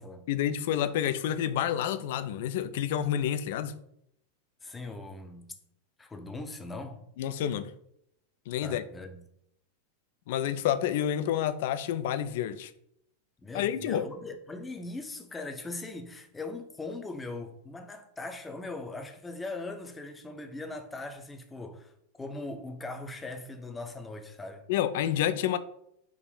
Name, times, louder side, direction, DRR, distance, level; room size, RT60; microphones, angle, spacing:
voice 1, 0.3-3.8 7.2-7.7 8.5-8.8 10.3-12.7 13.5-14.1 24.7-25.6, left 10 dB, 50° left, 0.3 m, -29 dB
voice 2, 4.6-5.5 6.0-7.0 8.6-9.2 13.4-24.7, left 2 dB, 10° left, 0.6 m, -40 dB
4.6 x 2.8 x 3.9 m
figure-of-eight pair, 90°, 0 cm